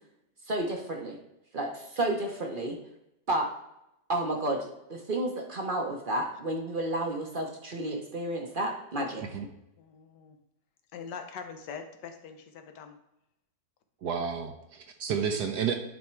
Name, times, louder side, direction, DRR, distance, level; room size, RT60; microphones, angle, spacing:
voice 1, 0.5-1.2 1.5-2.8 3.3-3.5 4.1-9.2, right 1 dB, 40° right, 2 dB, 0.8 m, -31 dB
voice 2, 9.8-10.4 10.9-13.0, left 6 dB, 75° left, 7 dB, 1.5 m, -43 dB
voice 3, 14.0-15.8, right 7 dB, 70° right, 4 dB, 1.2 m, -31 dB
10.5 x 3.6 x 4.4 m, 0.86 s
omnidirectional pair, 1.9 m